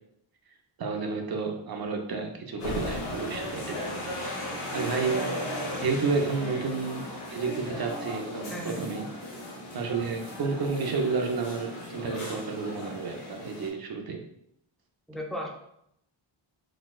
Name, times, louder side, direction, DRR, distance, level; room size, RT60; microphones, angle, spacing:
voice 1, 0.8-4.0 4.7-5.5 5.8-9.1 9.7-14.2, right 4 dB, 50° right, 3 dB, 0.6 m, -31 dB
sound 1, 2.6-13.7, left 1 dB, 90° left, 1.1 m, -36 dB
sound 2, 2.6-4.4, left 4 dB, 70° left, 0.5 m, -40 dB
voice 2, 8.5-8.9 15.1-15.5, equal, ahead, -1 dB, 0.4 m, -35 dB
4.0 x 2.2 x 2.3 m, 0.76 s
wide cardioid pair, 100°, 49 cm